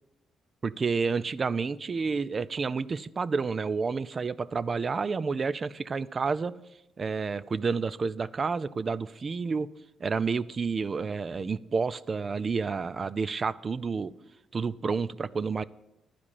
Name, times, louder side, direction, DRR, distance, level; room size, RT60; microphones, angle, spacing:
voice 1, 0.6-6.5 7.0-9.7 10.0-14.1 14.5-15.6, right 4 dB, 35° right, 17 dB, 0.4 m, -30 dB
11.0 x 5.0 x 8.4 m, 0.95 s
cardioid pair, 90°, 0 cm